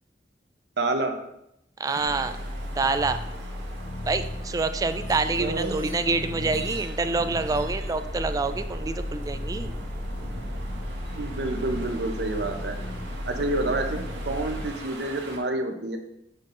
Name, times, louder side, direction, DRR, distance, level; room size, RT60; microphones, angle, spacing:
voice 1, 0.8-1.1 5.4-6.0 11.1-12.8 13.3-14.0 14.3-16.0, right 2 dB, 70° right, 5 dB, 0.8 m, -28 dB
voice 2, 1.8-2.4 2.8-3.2 4.1-9.7, right 3 dB, 20° right, 10 dB, 0.3 m, -27 dB
sound 1, 1.9-15.4, right 1 dB, 90° right, 1.2 m, -41 dB
sound 2, 2.0-14.7, left 1 dB, 65° left, 1.0 m, -35 dB
7.3 x 5.3 x 2.6 m, 0.79 s
head